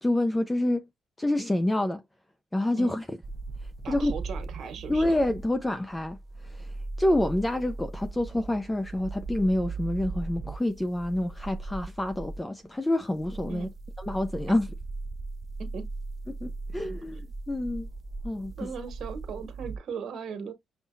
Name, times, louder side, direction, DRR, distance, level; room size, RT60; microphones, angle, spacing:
voice 1, 0.0-0.9 1.2-2.0 2.5-3.0 3.6-4.1 4.9-13.7 14.0-14.7 16.3-17.9 18.2-18.5, left 1 dB, 15° left, 0.4 m, -28 dB
sound 1, 3.2-12.4 13.0-19.8, right 3 dB, 40° right, 0.5 m, -38 dB
voice 2, 3.8-5.0 13.5-13.7 15.6-15.9 18.6-20.5, right 6 dB, 65° right, 1.5 m, -38 dB
5.4 x 2.2 x 2.5 m
cardioid pair, 90°, 0 cm